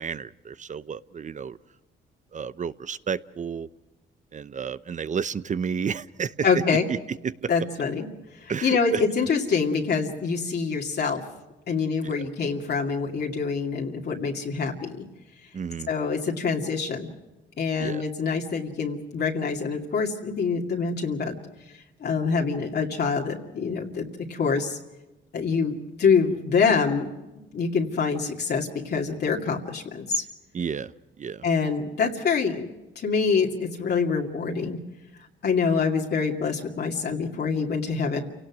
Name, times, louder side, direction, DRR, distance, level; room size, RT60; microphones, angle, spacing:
voice 1, 0.0-1.6 2.3-3.7 4.3-6.3 6.9-7.0 7.2-7.5 8.5-9.0 12.0-12.1 15.5-15.9 17.8-18.0 30.5-30.9 31.2-31.4, right 6 dB, 40° right, 16 dB, 0.7 m, -31 dB
voice 2, 6.4-6.9 7.5-8.1 8.4-11.2 11.7-15.1 15.9-17.1 17.6-21.4 22.0-24.8 25.3-27.1 27.5-30.2 31.4-32.7 33.0-34.8 35.4-38.2, left 5 dB, 55° left, 0 dB, 2.5 m, -25 dB
28.5 x 18.0 x 6.2 m, 1.0 s
cardioid pair, 90°, 20 cm